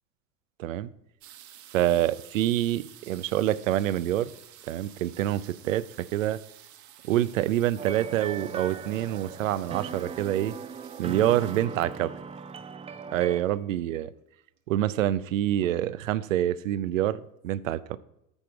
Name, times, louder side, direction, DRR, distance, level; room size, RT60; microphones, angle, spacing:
voice 1, 0.6-0.9 1.7-4.3 4.7-6.4 7.0-10.5 11.0-12.1 13.1-14.1 14.7-18.0, right 12 dB, 65° right, 17 dB, 0.6 m, -26 dB
sound 1, 1.2-13.7 14.6-14.7 14.9-15.3 15.6-16.1 16.7-16.8 17.0-17.1, right 12 dB, 45° right, 1.2 m, -52 dB
sound 2, 7.8-13.4, right 6 dB, 15° right, 0.6 m, -38 dB
14.0 x 5.9 x 4.7 m, 0.83 s
figure-of-eight pair, 80°, 41 cm